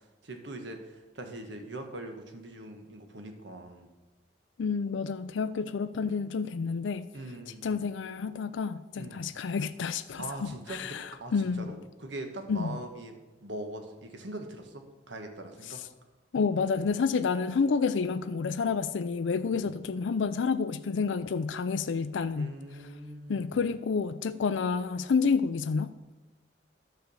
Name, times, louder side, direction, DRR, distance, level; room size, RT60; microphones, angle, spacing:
voice 1, 0.2-3.9 6.0-6.2 7.1-7.7 8.9-9.2 10.2-13.2 13.4-15.8 19.5-19.7 22.3-23.7, right 1 dB, 80° right, 5 dB, 1.3 m, -42 dB
voice 2, 4.6-7.1 7.6-11.7 12.5-12.8 16.3-22.5 23.3-25.9, left 5 dB, 85° left, 12 dB, 0.4 m, -29 dB
11.5 x 4.5 x 7.0 m, 1.1 s
head